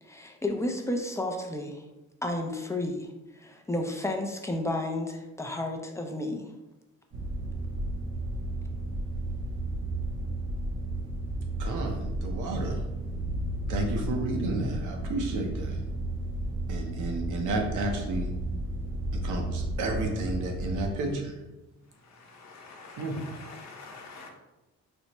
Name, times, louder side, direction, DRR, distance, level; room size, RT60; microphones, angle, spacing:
voice 1, 0.0-1.9 2.2-6.5, left 1 dB, 10° left, 2 dB, 0.4 m, -32 dB
sound 1, 7.1-21.0, right 1 dB, 45° right, 0.6 m, -33 dB
voice 2, 11.6-12.8 13.7-15.8 16.7-18.3 19.1-21.4 23.0-23.2, right 2 dB, 80° right, 3 dB, 0.7 m, -31 dB
voice 3, 21.8-24.3, left 3 dB, 65° left, 1 dB, 0.8 m, -47 dB
4.4 x 2.1 x 2.9 m, 1.1 s
cardioid pair, 90°, 30 cm